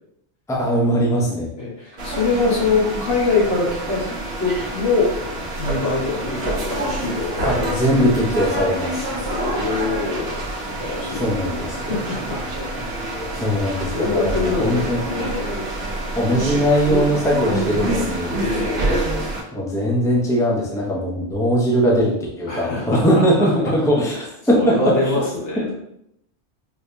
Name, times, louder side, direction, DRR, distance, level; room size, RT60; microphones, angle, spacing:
voice 1, 0.5-1.5 7.4-9.1 11.1-11.9 13.3-15.4 16.1-18.3 19.5-24.2 24.5-25.1, equal, 5° left, -3 dB, 0.6 m, -20 dB
voice 2, 1.6-4.1 4.4-5.1 5.6-7.8 9.2-11.3 11.8-12.4 13.3-13.4 13.9-15.6 18.3-18.9 22.5-23.8 24.6-25.7, left 3 dB, 60° left, -4 dB, 1.3 m, -24 dB
sound 1, 2.0-19.4, right 1 dB, 65° right, 0.9 m, -27 dB
4.8 x 2.7 x 2.2 m, 0.77 s
omnidirectional pair, 1.1 m